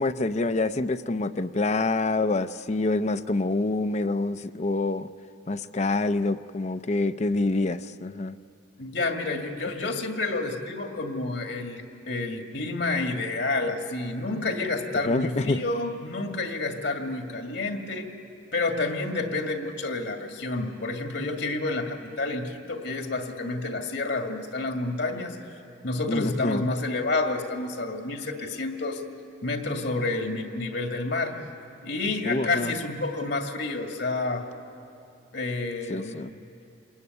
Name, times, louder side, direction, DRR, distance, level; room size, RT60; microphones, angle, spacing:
voice 1, 0.0-5.1 5.5-8.4 9.8-9.9 15.0-15.6 26.1-26.6 32.2-32.7 35.9-36.3, left 2 dB, 40° left, 0.6 m, -26 dB
voice 2, 8.8-18.1 18.5-25.4 25.8-29.0 29.4-31.4 31.8-34.4 35.3-36.2, left 3 dB, 70° left, 2.3 m, -29 dB
27.0 x 22.0 x 9.6 m
head